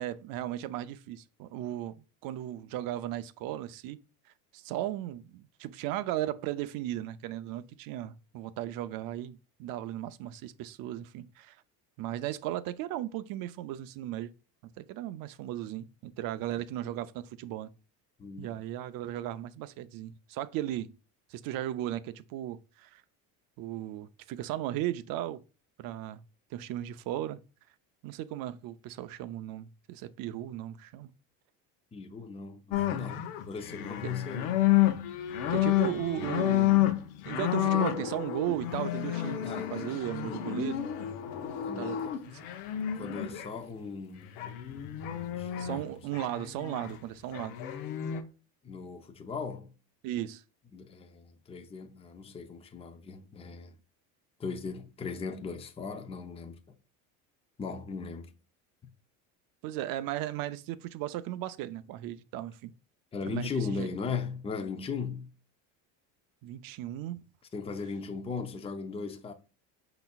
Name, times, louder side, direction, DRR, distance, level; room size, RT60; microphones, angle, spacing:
voice 1, 0.0-2.0 2.2-4.0 4.5-11.6 12.0-14.3 14.8-17.7 18.4-21.0 21.3-23.0 23.6-25.4 25.8-26.2 26.5-27.4 28.0-31.1 35.5-36.8 37.3-40.8 41.8-42.0 42.3-42.4 45.6-47.6 50.0-50.4 59.6-62.7 63.3-63.9 66.4-67.2, right 13 dB, 55° right, 0.5 m, -36 dB
voice 2, 18.2-18.6 31.9-34.6 39.4-39.8 41.6-42.2 42.9-44.4 45.3-45.8 48.6-49.7 50.7-53.8 54.4-56.6 57.6-58.3 63.1-65.3 67.5-69.3, left 5 dB, 15° left, 0.5 m, -38 dB
sound 1, 32.7-43.5 44.4-45.8 46.1-46.9 47.3-48.2, left 12 dB, 80° left, 0.8 m, -30 dB
5.4 x 4.0 x 2.3 m
supercardioid pair, 110°, 41 cm